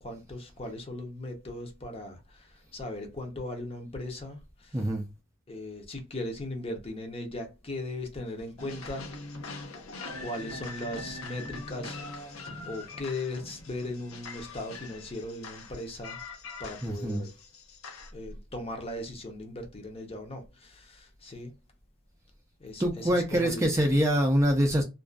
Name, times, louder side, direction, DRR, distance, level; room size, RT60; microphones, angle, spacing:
voice 1, 0.0-4.8 5.5-9.4 10.2-12.3 12.6-16.2 16.6-17.4 18.1-21.5 22.6-23.7, left 1 dB, 30° left, 0.6 m, -38 dB
voice 2, 4.7-5.0 16.8-17.2 22.8-24.8, equal, 15° right, 0.4 m, -25 dB
sound 1, 8.6-18.1, left 3 dB, 85° left, 0.8 m, -42 dB
2.5 x 2.3 x 2.2 m
head